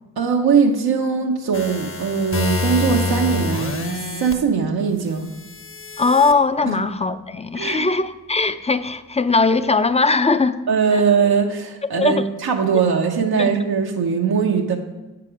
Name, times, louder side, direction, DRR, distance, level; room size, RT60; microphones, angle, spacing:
voice 1, 0.2-5.3 6.6-6.8 7.5-7.9 10.7-14.8, right 6 dB, 85° right, 1 dB, 0.7 m, -20 dB
sound 1, 1.5-4.3 5.3-6.3, left 3 dB, 35° left, 0.8 m, -26 dB
voice 2, 6.0-10.6 12.0-12.2 13.4-13.5, left 4 dB, 20° left, 12 dB, 0.4 m, -19 dB
7.6 x 5.8 x 4.9 m, 1.1 s
cardioid pair, 50°, 36 cm